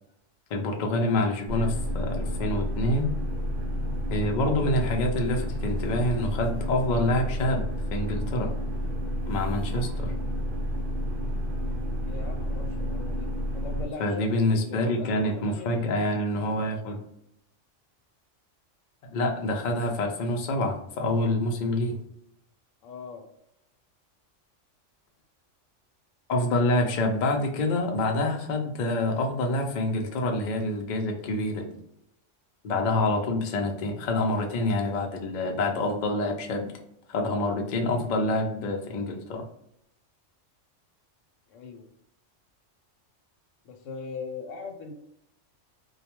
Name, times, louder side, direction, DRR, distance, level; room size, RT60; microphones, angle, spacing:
voice 1, 0.5-3.1 4.1-8.5 9.3-10.1 14.0-17.0 19.1-22.0 26.3-31.7 32.6-36.7 37.1-39.4, left 1 dB, 65° left, 2 dB, 0.4 m, -27 dB
sound 1, 1.5-13.9, equal, 55° right, 0.7 m, -30 dB
voice 2, 12.0-13.3 13.5-15.8 22.8-23.2 41.5-41.8 43.6-44.9, left 4 dB, 85° left, 4 dB, 0.9 m, -40 dB
2.2 x 2.2 x 2.9 m, 0.77 s
omnidirectional pair, 1.3 m